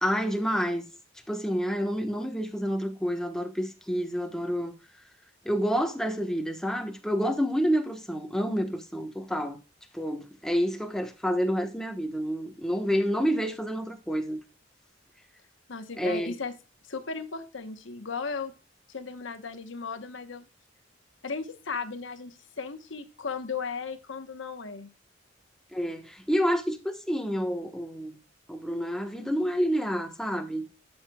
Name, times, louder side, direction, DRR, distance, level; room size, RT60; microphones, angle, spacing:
voice 1, 0.0-0.9 1.3-4.7 5.4-9.6 9.9-14.4 16.0-16.3 25.7-28.2 28.5-30.7, equal, 5° left, 1.1 m, -28 dB
voice 2, 15.7-16.5 16.9-18.5 18.9-20.4 21.2-24.9, left 4 dB, 75° left, 1.0 m, -36 dB
11.5 x 6.7 x 2.3 m
head